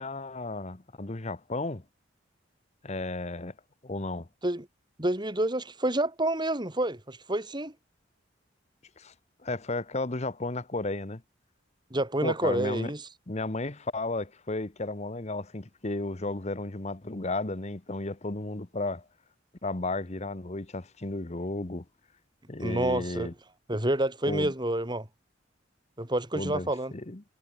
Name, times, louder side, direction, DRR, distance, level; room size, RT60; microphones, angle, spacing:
voice 1, 0.0-1.8 2.8-3.5 3.8-4.3 9.0-9.1 9.4-11.2 12.2-12.9 13.3-19.0 19.6-21.8 22.5-23.3 24.3-24.5 26.3-27.2, left 2 dB, 35° left, 1.2 m, -33 dB
voice 2, 5.0-7.7 11.9-13.0 22.6-23.3 23.7-25.1 26.0-26.9, right 1 dB, 25° right, 3.1 m, -28 dB
head